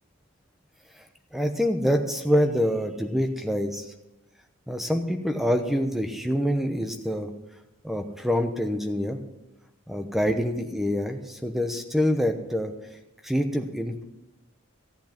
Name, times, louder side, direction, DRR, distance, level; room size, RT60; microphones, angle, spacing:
voice 1, 1.3-3.9 4.7-7.3 7.8-9.2 9.9-12.7 13.2-14.0, equal, ahead, 5 dB, 0.9 m, -26 dB
14.5 x 8.2 x 6.0 m, 0.93 s
head